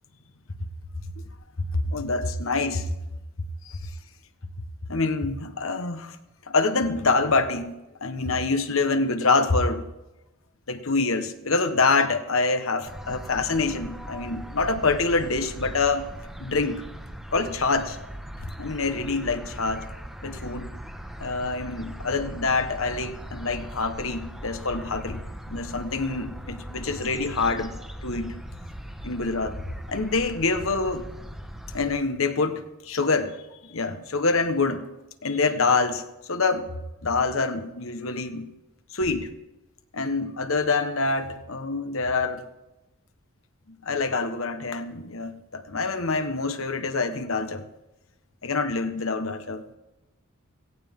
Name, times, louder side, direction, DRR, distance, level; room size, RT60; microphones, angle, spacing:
voice 1, 1.6-3.0 3.7-3.9 4.9-6.2 6.5-7.7 8.0-9.8 10.7-16.1 16.4-16.8 17.3-18.0 18.6-19.9 20.2-20.7 21.2-25.2 25.5-27.7 28.0-28.4 29.0-29.6 29.9-31.1 31.7-33.4 33.6-34.9 35.2-36.7 37.0-38.5 38.9-39.3 39.9-42.5 43.8-47.6 48.4-49.6, left 3 dB, 70° left, 1.3 m, -26 dB
sound 1, 12.8-31.9, equal, ahead, 1.4 m, -39 dB
17.5 x 16.5 x 3.7 m
head